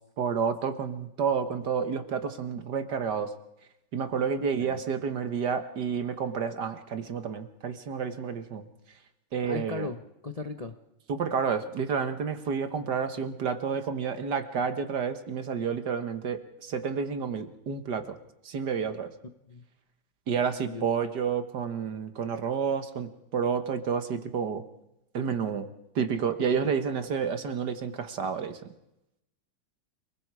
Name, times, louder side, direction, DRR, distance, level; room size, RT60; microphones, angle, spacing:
voice 1, 0.2-3.3 3.9-8.6 9.3-9.9 11.1-18.2 18.5-19.1 20.3-24.6 25.1-25.7 26.0-28.6, right 6 dB, 60° right, 9 dB, 2.0 m, -30 dB
voice 2, 4.4-4.8 9.4-10.7 19.5-19.6 20.7-20.9 26.4-26.5, left 3 dB, 30° left, 7 dB, 0.8 m, -37 dB
29.5 x 20.5 x 4.9 m, 0.87 s
omnidirectional pair, 2.1 m